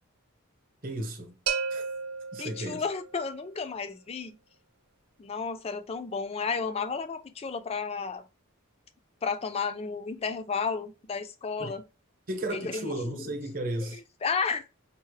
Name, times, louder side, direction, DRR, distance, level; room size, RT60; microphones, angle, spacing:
voice 1, 0.8-1.4 1.7-1.8 2.3-2.8 11.6-11.7 12.3-14.0, right 1 dB, 40° right, 0.9 m, -34 dB
sound 1, 1.5-3.3, right 6 dB, 75° right, 0.5 m, -33 dB
voice 2, 2.4-4.4 5.2-8.2 9.2-11.8 12.5-13.3 13.8-14.6, left 5 dB, 30° left, 0.3 m, -32 dB
5.4 x 2.0 x 3.2 m
head